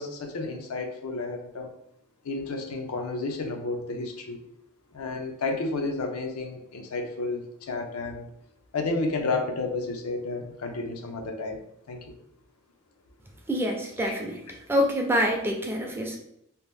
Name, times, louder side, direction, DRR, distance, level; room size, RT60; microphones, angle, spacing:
voice 1, 0.0-1.7 2.2-4.4 4.9-8.3 8.7-11.6 11.9-12.1 14.1-14.2, left 3 dB, 85° left, 3 dB, 0.5 m, -31 dB
voice 2, 13.5-14.4 14.7-16.2, equal, 10° right, 1 dB, 0.4 m, -26 dB
2.8 x 2.0 x 3.3 m, 0.75 s
head